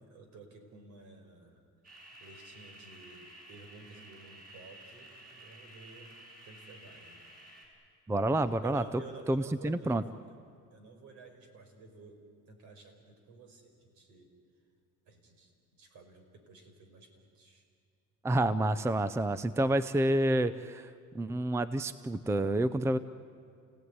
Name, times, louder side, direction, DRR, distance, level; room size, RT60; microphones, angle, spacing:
voice 1, 0.1-1.6 2.2-6.2 6.4-7.2 8.6-10.1 10.7-14.3 15.1-17.6, right 4 dB, 65° right, 5 dB, 5.1 m, -52 dB
sound 1, 1.8-7.7, right 1 dB, 30° right, 7.9 m, -53 dB
voice 2, 8.1-8.8 9.3-10.0 18.2-20.9 21.1-23.0, right 1 dB, 10° right, 14 dB, 0.6 m, -28 dB
29.0 x 17.5 x 9.6 m, 2.4 s
cardioid pair, 125°, 31 cm